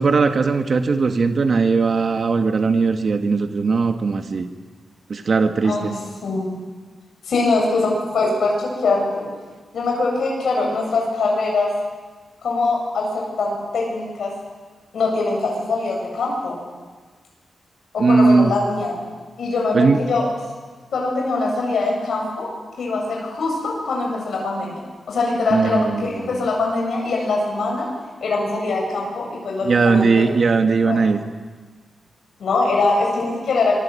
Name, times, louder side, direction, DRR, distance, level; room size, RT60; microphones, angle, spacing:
voice 1, 0.0-4.5 5.1-5.9 18.0-18.5 19.7-20.0 25.5-26.5 29.6-31.2, right 4 dB, 45° right, 6 dB, 1.5 m, -18 dB
voice 2, 6.2-6.5 7.2-9.3 9.7-11.7 12.4-14.3 14.9-16.6 17.9-19.0 19.4-20.3 20.9-22.5 22.8-27.9 28.2-30.3 30.9-31.0 32.4-33.8, left 3 dB, 75° left, -1 dB, 7.4 m, -22 dB
26.0 x 24.5 x 8.3 m, 1.4 s
wide cardioid pair, 145°, 0 cm